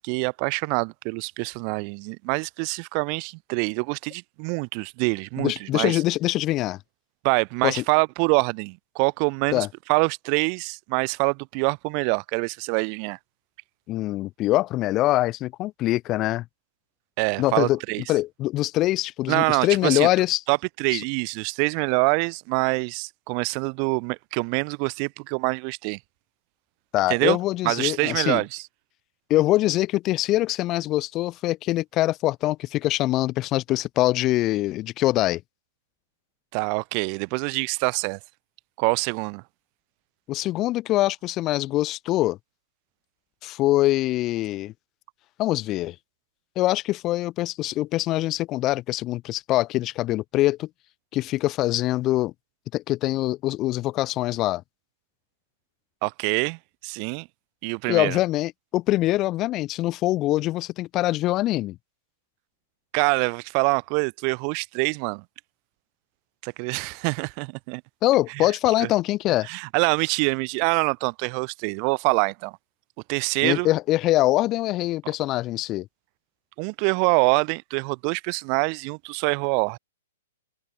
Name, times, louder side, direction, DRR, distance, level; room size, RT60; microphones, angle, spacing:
voice 1, 0.0-6.0 7.2-13.2 17.2-18.0 19.3-20.1 20.5-26.0 27.1-27.4 27.6-28.6 36.5-38.2 38.8-39.4 56.0-57.3 57.6-58.2 62.9-65.2 66.4-67.8 68.3-68.5 68.8-68.9 69.4-72.5 73.1-73.7 76.6-79.8, right 40 dB or more, 40° right, 3.9 m, -25 dB
voice 2, 5.4-6.8 7.6-7.8 9.5-9.7 13.9-16.4 17.4-17.8 18.1-20.4 20.9-21.0 26.9-28.4 29.3-35.4 40.3-42.4 43.4-44.7 45.4-45.9 46.6-50.7 51.1-52.3 52.7-54.6 57.9-61.8 68.0-69.5 73.4-75.9, left 16 dB, 30° left, 1.0 m, -23 dB
hypercardioid pair, 135°, 0 cm